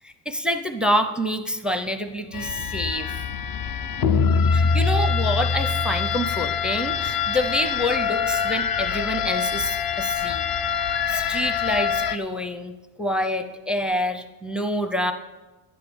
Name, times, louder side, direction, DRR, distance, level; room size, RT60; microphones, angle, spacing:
voice 1, 0.0-3.2 4.5-10.4 11.1-15.1, equal, ahead, 8 dB, 0.6 m, -27 dB
sound 1, 2.3-12.2, left 6 dB, 50° left, 0.8 m, -24 dB
11.0 x 9.1 x 7.2 m, 1.1 s
cardioid pair, 140°, 46 cm